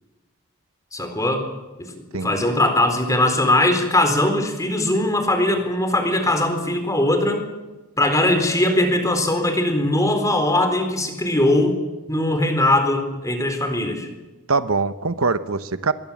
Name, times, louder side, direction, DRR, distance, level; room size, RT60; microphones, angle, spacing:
voice 1, 0.9-1.5 1.9-7.4 8.0-11.8 12.1-14.1, left 1 dB, 15° left, 6 dB, 4.1 m, -20 dB
voice 2, 2.1-2.5 14.5-15.9, right 4 dB, 75° right, 12 dB, 1.2 m, -23 dB
26.0 x 22.0 x 7.4 m, 1.1 s
head